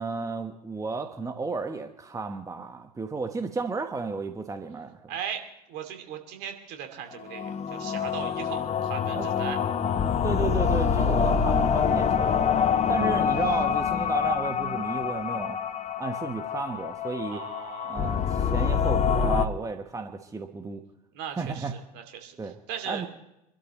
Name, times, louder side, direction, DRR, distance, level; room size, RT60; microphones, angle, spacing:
voice 1, 0.0-5.0 9.1-9.3 10.2-12.6 12.9-15.6 16.0-17.4 17.9-20.8 21.3-21.7 22.4-22.6 22.8-23.1, right 4 dB, 15° right, 6 dB, 1.3 m, -33 dB
voice 2, 5.1-5.4 5.7-9.6 17.3-18.1 21.1-23.0, right 9 dB, 55° right, 5 dB, 2.7 m, -38 dB
sound 1, 7.2-19.5, left 7 dB, 35° left, 1.0 m, -26 dB
26.5 x 12.5 x 3.1 m, 0.84 s
figure-of-eight pair, 70°, 20 cm